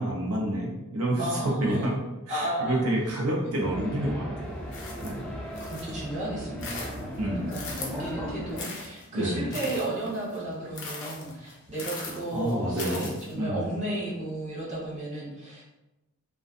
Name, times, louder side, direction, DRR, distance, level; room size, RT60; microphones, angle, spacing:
voice 1, 0.0-1.9 2.3-4.6 5.0-5.2 7.2-7.5 9.1-9.6 12.3-13.6, right 1 dB, 85° right, -3 dB, 0.6 m, -29 dB
voice 2, 1.2-2.0 2.3-2.8 5.6-7.2 7.5-15.7, right 1 dB, 35° right, -7 dB, 0.8 m, -33 dB
sound 1, 3.6-8.6, equal, 5° left, 0.3 m, -37 dB
sound 2, 4.7-6.0 6.4-8.1 8.6-13.3, left 3 dB, 55° left, 0.5 m, -40 dB
2.5 x 2.2 x 2.4 m, 0.99 s
head